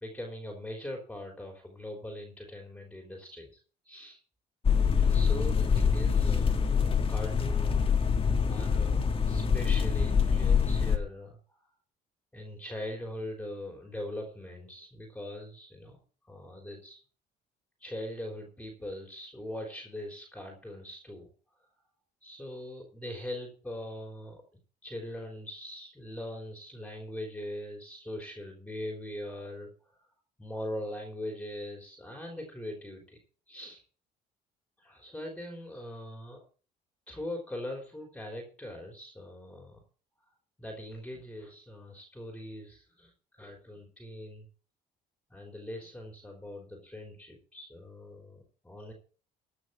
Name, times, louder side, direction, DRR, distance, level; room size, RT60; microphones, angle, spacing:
voice 1, 0.0-4.2 4.9-8.0 8.5-9.0 9.3-11.6 12.3-16.0 16.2-17.0 17.8-21.3 22.2-24.4 24.8-29.7 30.4-33.2 33.5-33.8 34.8-36.4 37.1-39.8 40.6-44.5 45.3-48.9, left 1 dB, 5° left, 2 dB, 3.6 m, -41 dB
sound 1, 4.6-11.0, left 6 dB, 30° left, 1.7 m, -25 dB
14.5 x 6.3 x 6.8 m, 0.40 s
cardioid pair, 110°, 17 cm